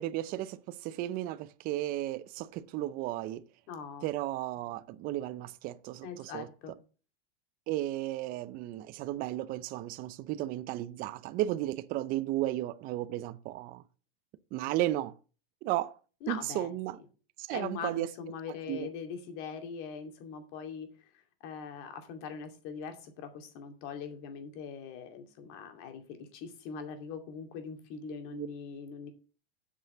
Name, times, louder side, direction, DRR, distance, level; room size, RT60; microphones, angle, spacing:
voice 1, 0.0-3.4 4.0-6.5 7.7-13.8 14.5-15.2 15.6-15.9 16.3-17.0 17.4-18.1 18.7-18.9 28.3-28.5, right 14 dB, 30° right, 0.5 m, -34 dB
voice 2, 3.7-4.1 6.0-6.7 16.2-16.8 17.5-29.1, left 6 dB, 45° left, 2.6 m, -42 dB
8.3 x 5.8 x 7.1 m
supercardioid pair, 150°, 29 cm